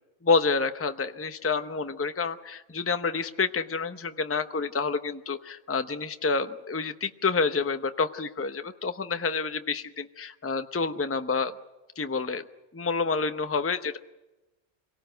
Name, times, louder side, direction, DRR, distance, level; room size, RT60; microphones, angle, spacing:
voice 1, 0.2-11.5 12.0-12.4 12.7-14.0, left 4 dB, 15° left, 9 dB, 0.8 m, -28 dB
26.5 x 18.0 x 8.0 m, 1.0 s
omnidirectional pair, 1.2 m